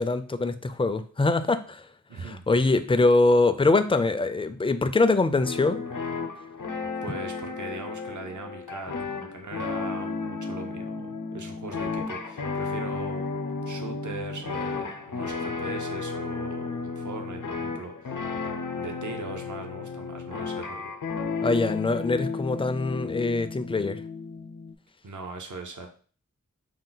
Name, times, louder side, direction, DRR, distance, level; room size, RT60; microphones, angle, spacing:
voice 1, 0.0-5.9 21.4-24.0, left 3 dB, 20° left, 10 dB, 0.3 m, -23 dB
voice 2, 2.1-2.7 7.0-13.3 13.7-18.3 18.7-20.9 25.0-25.9, right 3 dB, 70° right, 4 dB, 0.7 m, -40 dB
sound 1, 5.4-24.7, left 4 dB, 80° left, 0.6 m, -33 dB
5.4 x 2.2 x 3.8 m, 0.42 s
wide cardioid pair, 65°, 31 cm